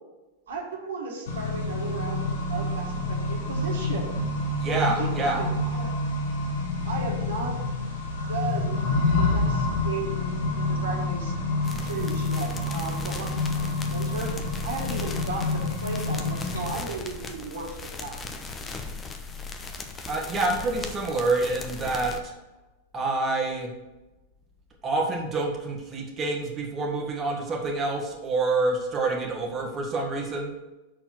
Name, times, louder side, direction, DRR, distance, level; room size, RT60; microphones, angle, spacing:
voice 1, 0.5-4.1 4.8-6.0 6.8-7.5 8.3-8.8 9.2-11.3 11.8-18.2, right 3 dB, 75° right, 0 dB, 1.6 m, -35 dB
Accelerating revving vroom, 1.3-16.7, left 2 dB, 70° left, 1.5 m, -28 dB
voice 2, 4.6-5.5 20.1-22.3 22.9-23.7 24.8-30.5, right 3 dB, 25° right, -1 dB, 1.7 m, -27 dB
sound 1, 11.6-22.2, left 3 dB, 20° left, 0.9 m, -38 dB
6.3 x 4.4 x 6.2 m, 1.1 s
hypercardioid pair, 100°, 0 cm